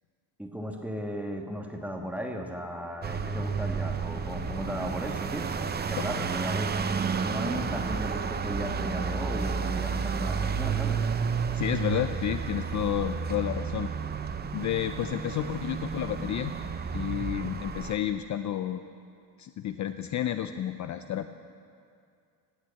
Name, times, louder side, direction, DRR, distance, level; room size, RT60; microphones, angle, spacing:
voice 1, 0.4-11.0, equal, 5° right, 2 dB, 1.3 m, -36 dB
sound 1, 3.0-18.0, right 5 dB, 25° right, 0.6 m, -31 dB
voice 2, 11.5-13.9 14.5-16.5 16.9-18.8 19.4-21.3, left 11 dB, 45° left, 9 dB, 0.5 m, -31 dB
18.5 x 6.3 x 8.2 m, 2.3 s
cardioid pair, 120°, 39 cm